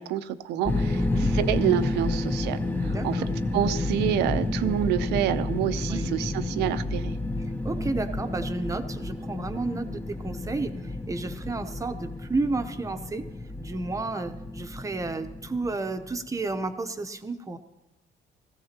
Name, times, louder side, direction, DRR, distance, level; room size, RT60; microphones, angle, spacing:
voice 1, 0.0-3.2 3.5-7.1, right 11 dB, 85° right, 12 dB, 0.7 m, -28 dB
sound 1, 0.6-16.5, left 2 dB, 10° left, 0.8 m, -30 dB
voice 2, 0.9-1.3 2.8-3.3 5.9-6.2 7.6-13.3 13.6-17.6, right 3 dB, 20° right, 7 dB, 0.9 m, -32 dB
18.0 x 15.0 x 3.0 m, 1.0 s
cardioid pair, 110°, 17 cm